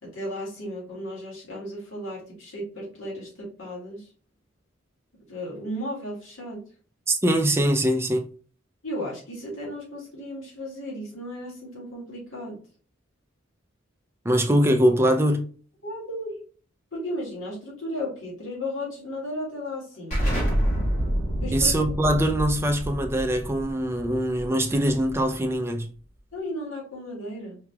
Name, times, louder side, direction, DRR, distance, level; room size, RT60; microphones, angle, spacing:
voice 1, 0.0-4.1 5.3-6.6 8.8-12.6 15.8-16.4 16.9-20.3 21.4-21.7 26.3-27.6, left 1 dB, 75° left, 1.9 m, -35 dB
voice 2, 7.1-8.3 14.2-15.4 21.5-25.9, right 1 dB, 10° right, 0.4 m, -22 dB
Explosion, 20.1-25.5, equal, 35° left, 1.6 m, -28 dB
4.8 x 2.9 x 2.3 m
head